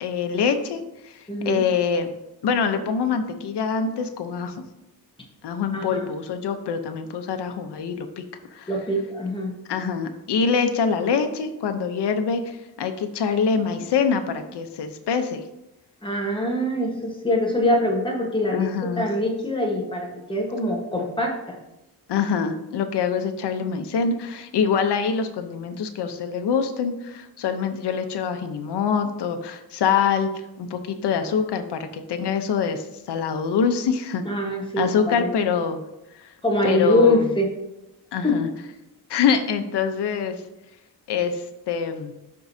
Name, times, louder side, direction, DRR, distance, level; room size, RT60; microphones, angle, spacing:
voice 1, 0.0-2.1 2.4-4.5 5.4-8.2 8.5-8.7 9.7-15.4 18.5-19.1 22.1-30.3 30.6-34.2 34.8-35.8 36.2-36.3 36.6-37.3 38.1-38.5 39.1-40.4 41.1-42.1, left 6 dB, 90° left, 7 dB, 0.8 m, -25 dB
voice 2, 1.3-1.6 5.7-6.0 8.7-9.5 16.0-21.6 34.2-35.3 36.4-37.5 38.2-38.4, left 1 dB, 10° left, 0 dB, 1.2 m, -23 dB
12.0 x 4.6 x 2.7 m, 0.93 s
wide cardioid pair, 160°, 40 cm